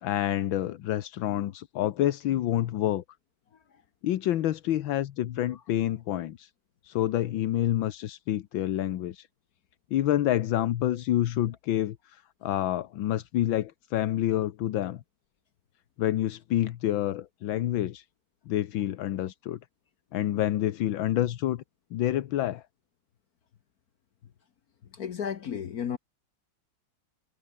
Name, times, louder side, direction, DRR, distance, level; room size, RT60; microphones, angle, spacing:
voice 1, 0.0-3.0 4.0-6.5 6.8-9.3 9.9-15.0 16.0-18.0 18.5-19.6 20.1-21.6 21.9-22.6, left 12 dB, 80° left, 1.7 m, -28 dB
voice 2, 24.9-26.0, left 8 dB, 55° left, 1.4 m, -33 dB
omnidirectional pair, 2.1 m